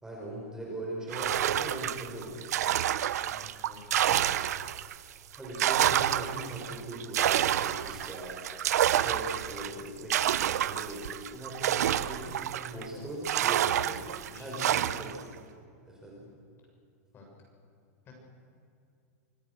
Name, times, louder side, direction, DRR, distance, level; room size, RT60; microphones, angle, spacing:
voice 1, 0.0-2.4 5.4-8.4 8.8-15.3 15.8-16.3, right 1 dB, 5° right, -3 dB, 4.8 m, -40 dB
sound 1, 1.1-5.0 5.3-12.8 13.2-15.2, right 11 dB, 80° right, 0.8 m, -28 dB
voice 2, 3.2-4.2 12.7-13.0 14.2-15.0 17.1-17.3 18.1-18.2, left 2 dB, 25° left, 0 dB, 6.8 m, -50 dB
25.5 x 17.5 x 6.5 m, 2.5 s
supercardioid pair, 145°, 8 cm